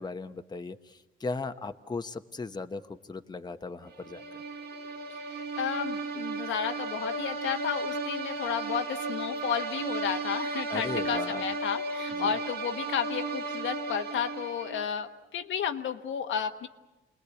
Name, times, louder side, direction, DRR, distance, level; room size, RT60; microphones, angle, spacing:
voice 1, 0.0-4.2 10.7-11.5 12.1-12.3, left 3 dB, 20° left, 7 dB, 1.1 m, -37 dB
sound 1, 3.9-14.9, right 2 dB, 55° right, 2.9 m, -34 dB
voice 2, 5.1-16.7, left 8 dB, 75° left, 7 dB, 1.4 m, -33 dB
28.0 x 20.5 x 8.4 m, 1.0 s
cardioid pair, 90°, 20 cm